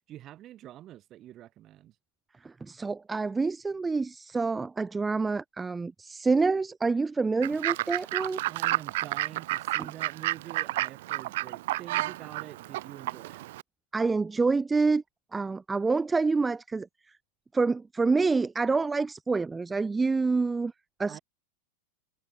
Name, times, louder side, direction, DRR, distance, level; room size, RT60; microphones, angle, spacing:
voice 1, 0.1-2.0 8.5-13.5 21.1-21.2, right 13 dB, 30° right, 2.5 m, -46 dB
voice 2, 2.4-8.4 13.9-15.0 15.3-16.9 17.5-20.7 21.0-21.2, right 4 dB, 10° right, 0.6 m, -27 dB
Fowl / Bird, 7.4-13.6, right 17 dB, 55° right, 0.6 m, -31 dB
figure-of-eight pair, 90°, 0 cm